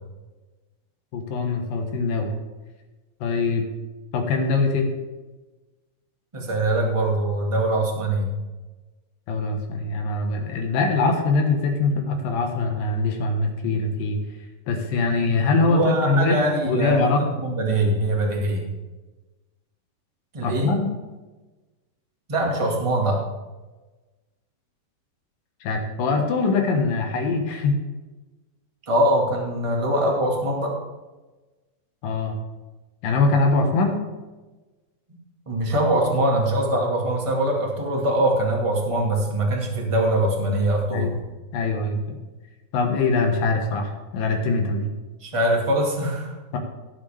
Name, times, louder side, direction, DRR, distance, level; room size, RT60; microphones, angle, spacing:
voice 1, 1.1-2.3 3.2-3.7 4.1-4.9 9.3-14.2 14.7-16.4 16.6-17.2 20.4-20.9 25.6-27.8 32.0-32.4 33.0-34.0 40.9-41.1 41.5-42.2 42.7-44.9 46.5-46.6, left 3 dB, 85° left, 4 dB, 3.1 m, -23 dB
voice 2, 6.3-8.3 15.2-18.7 20.3-20.7 22.3-23.2 28.9-30.8 35.5-41.1 45.2-46.4, right 1 dB, 15° right, -1 dB, 1.1 m, -23 dB
18.0 x 7.6 x 3.5 m, 1.2 s
omnidirectional pair, 3.9 m